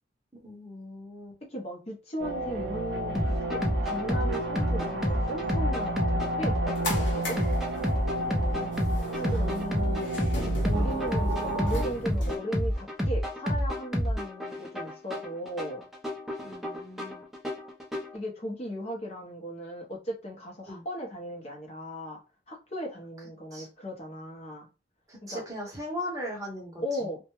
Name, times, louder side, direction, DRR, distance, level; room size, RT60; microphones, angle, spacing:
voice 1, 0.3-1.4 8.5-9.2 9.7-9.9 16.4-17.3 20.7-20.8 23.5-23.7 25.1-26.8, equal, 20° right, 0.8 m, -39 dB
voice 2, 1.5-3.1 3.5-7.4 9.1-10.2 10.6-15.9 18.1-22.2 22.5-24.7 25.3-25.4 26.8-27.2, equal, 35° left, 0.7 m, -37 dB
sound 1, 2.2-11.8, right 1 dB, 70° right, 0.5 m, -32 dB
sound 2, 3.1-18.2, equal, ahead, 0.4 m, -29 dB
sound 3, 6.4-12.4, equal, 85° left, 0.9 m, -37 dB
2.2 x 2.1 x 2.9 m
head